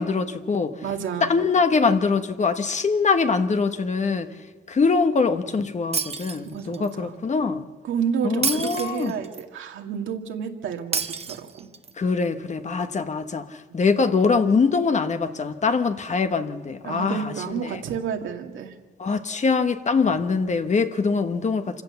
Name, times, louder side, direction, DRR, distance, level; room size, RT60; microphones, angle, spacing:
voice 1, 0.0-0.8 1.2-4.3 4.7-7.7 8.2-9.1 12.0-17.8 19.0-21.8, left 4 dB, 35° left, 8 dB, 1.3 m, -23 dB
voice 2, 0.8-1.3 6.5-7.1 7.8-11.7 16.8-18.7, right 7 dB, 75° right, 4 dB, 2.0 m, -30 dB
Shatter, 5.9-6.9 8.4-9.4 10.9-11.9, right 5 dB, 30° right, 0.9 m, -29 dB
26.0 x 16.5 x 7.0 m, 1.4 s
cardioid pair, 90°, 20 cm